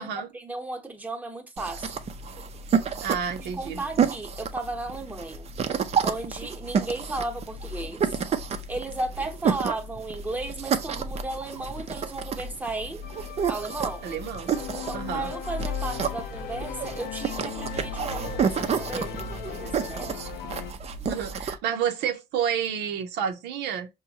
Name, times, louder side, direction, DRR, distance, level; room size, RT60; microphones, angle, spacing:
voice 1, 0.0-2.0 3.4-5.5 6.0-8.1 8.7-13.0 13.5-14.1 14.9-20.2, right 2 dB, 10° right, 0.9 m, -35 dB
sound 1, 1.6-21.5, right 6 dB, 40° right, 0.5 m, -30 dB
voice 2, 3.0-3.8 14.0-14.5 14.9-15.3 21.1-23.9, right 8 dB, 90° right, 0.8 m, -30 dB
sound 2, 13.0-20.7, left 10 dB, 80° left, 0.6 m, -39 dB
5.5 x 2.2 x 2.7 m
cardioid pair, 110°, 17 cm